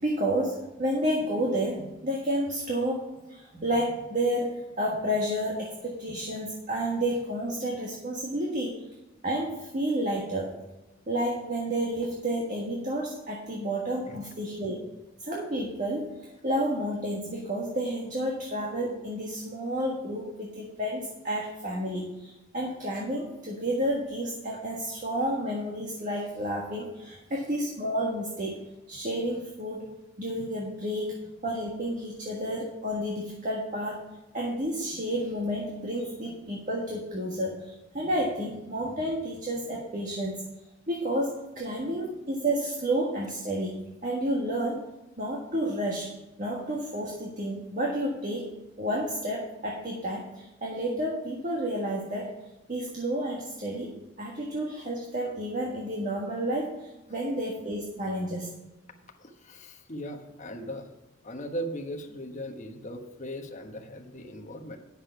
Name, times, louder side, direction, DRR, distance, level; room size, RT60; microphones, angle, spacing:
voice 1, 0.0-8.9 9.2-10.5 11.1-14.8 15.2-28.6 28.9-29.9 30.2-34.0 34.3-40.4 40.9-44.9 45.2-46.1 46.4-48.5 48.8-52.3 52.7-58.5, right 1 dB, 40° right, -2 dB, 1.5 m, -31 dB
voice 2, 59.2-60.9 61.2-64.8, equal, 40° left, 3 dB, 1.2 m, -38 dB
10.0 x 6.7 x 5.7 m, 1.0 s
head